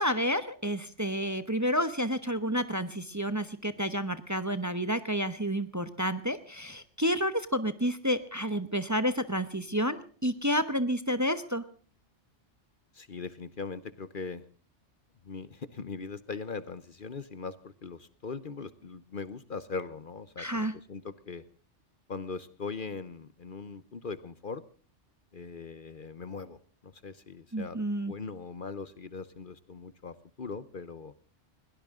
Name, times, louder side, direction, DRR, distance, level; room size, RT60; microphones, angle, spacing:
voice 1, 0.0-11.6 20.4-20.7 27.5-28.1, equal, 15° right, 12 dB, 1.0 m, -30 dB
voice 2, 12.9-14.4 15.2-21.4 22.1-24.6 25.3-27.8 28.0-31.1, left 4 dB, 50° left, 15 dB, 1.0 m, -40 dB
21.5 x 18.0 x 3.7 m, 0.41 s
omnidirectional pair, 1.2 m